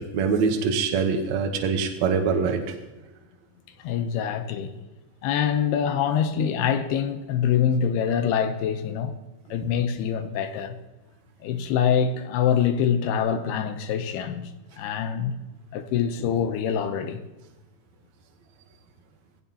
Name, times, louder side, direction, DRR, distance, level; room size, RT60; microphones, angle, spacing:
voice 1, 0.0-2.8, right 5 dB, 75° right, 1.7 m, -24 dB
voice 2, 3.8-4.7 5.2-9.1 9.5-10.8 11.4-14.5 14.8-15.4 15.7-17.2, left 8 dB, 80° left, 2.7 m, -25 dB
18.5 x 16.5 x 2.9 m
omnidirectional pair, 4.8 m